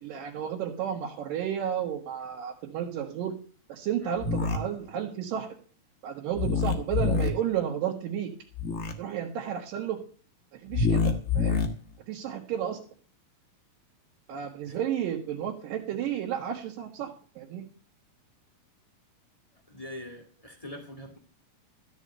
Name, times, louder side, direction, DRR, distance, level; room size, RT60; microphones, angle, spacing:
voice 1, 0.0-3.3 3.7-5.5 6.0-8.3 9.0-10.0 10.5-11.6 12.1-12.8 14.3-17.7, right 9 dB, 70° right, -2 dB, 2.9 m, -32 dB
sound 1, 4.2-4.6 6.4-7.3 8.5-8.9 10.7-11.7, left 5 dB, 70° left, 0.7 m, -26 dB
voice 2, 19.7-21.2, left 1 dB, 35° left, 2 dB, 0.5 m, -43 dB
13.5 x 5.4 x 8.7 m, 0.42 s
omnidirectional pair, 4.1 m